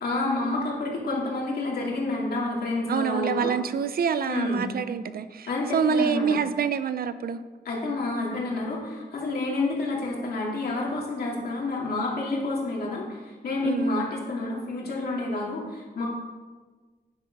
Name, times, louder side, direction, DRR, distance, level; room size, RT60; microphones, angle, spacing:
voice 1, 0.0-3.5 4.3-4.7 5.5-6.4 7.6-16.1, left 2 dB, 70° left, -3 dB, 2.6 m, -29 dB
voice 2, 2.9-7.4 13.6-14.1, right 6 dB, 65° right, 12 dB, 0.5 m, -26 dB
9.6 x 6.6 x 5.3 m, 1.4 s
wide cardioid pair, 175°, 17 cm